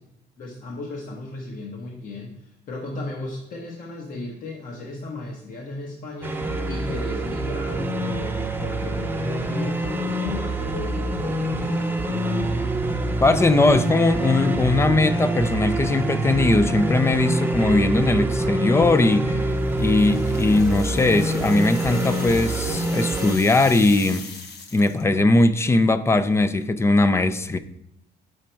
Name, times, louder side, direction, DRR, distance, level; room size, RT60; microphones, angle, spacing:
voice 1, 0.4-12.1, left 2 dB, 55° left, 1.2 m, -35 dB
sound 1, 6.2-23.4, right 1 dB, 10° right, 0.7 m, -25 dB
voice 2, 13.2-19.4 19.8-24.3 24.7-27.6, left 2 dB, 15° left, 0.4 m, -20 dB
sound 2, 19.5-25.1, left 4 dB, 75° left, 1.0 m, -39 dB
6.2 x 5.1 x 4.4 m
cardioid pair, 110°, 17 cm